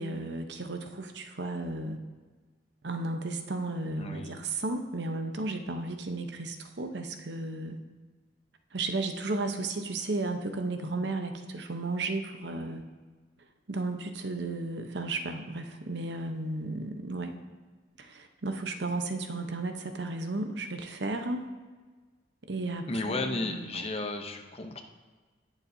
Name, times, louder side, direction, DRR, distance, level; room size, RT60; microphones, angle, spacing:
voice 1, 0.0-2.0 2.8-7.8 8.7-12.8 13.7-17.4 18.0-21.4 22.5-23.8, right 2 dB, 60° right, 6 dB, 0.8 m, -34 dB
voice 2, 4.0-4.5 22.9-24.8, left 2 dB, 30° left, 5 dB, 0.7 m, -34 dB
19.0 x 7.2 x 2.7 m, 1.4 s
head